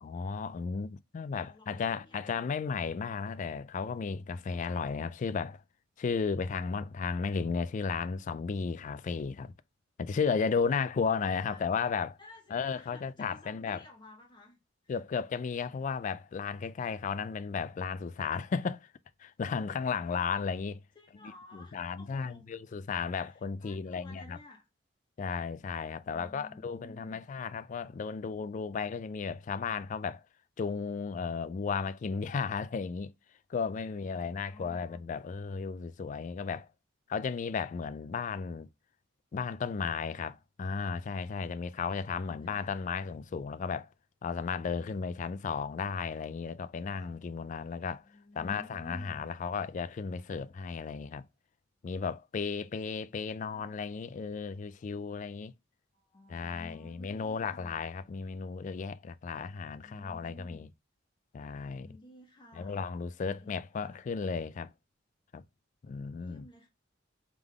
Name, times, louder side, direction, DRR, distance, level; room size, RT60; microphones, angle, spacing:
voice 1, 0.0-5.6 6.0-9.5 10.0-12.2 12.5-13.8 14.9-18.9 19.2-20.8 21.5-24.4 25.2-30.2 30.6-33.1 33.5-36.7 37.1-38.7 39.3-43.9 44.2-48.0 48.4-51.2 51.8-55.5 56.3-60.7 61.3-61.9 62.6-64.7 65.3-65.4 65.8-66.5, left 5 dB, 40° left, 0.3 m, -34 dB
voice 2, 1.4-2.4 4.6-4.8 11.4-11.7 12.2-14.9 15.6-15.8 20.0-20.3 20.9-22.5 23.2-24.7 26.0-27.2 33.9-35.1 42.0-43.1 48.0-49.2 55.9-57.8 59.8-60.7 61.8-62.8 63.2-64.0 66.1-66.7, left 1 dB, 25° left, 1.4 m, -54 dB
3.6 x 3.5 x 3.4 m
head